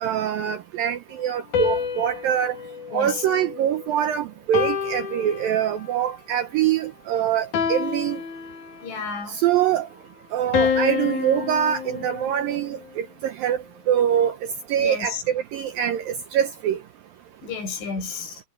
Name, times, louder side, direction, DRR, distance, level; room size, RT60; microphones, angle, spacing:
voice 1, 0.0-2.6 2.9-8.2 9.3-9.9 10.3-13.6 13.9-16.8, right 10 dB, 80° right, 2.0 m, -24 dB
sound 1, 1.5-3.9 4.5-6.0 7.5-9.0 10.5-12.8, left 6 dB, 50° left, 3.0 m, -28 dB
voice 2, 2.9-3.3 8.8-9.4 14.8-15.2 17.4-18.4, left 5 dB, 80° left, 8.7 m, -31 dB
omnidirectional pair, 5.3 m